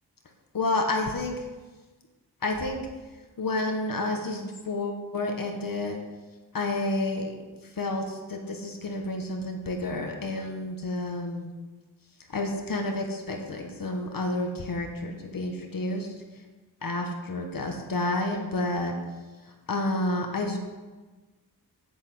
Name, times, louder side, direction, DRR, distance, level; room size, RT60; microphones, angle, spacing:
voice 1, 0.5-1.4 2.4-2.8 3.4-6.0 6.5-7.3 7.8-11.5 12.3-16.1 16.8-18.9 19.7-20.6, left 2 dB, 55° left, 2 dB, 1.8 m, -30 dB
8.9 x 8.7 x 7.9 m, 1.3 s
wide cardioid pair, 115°, 40 cm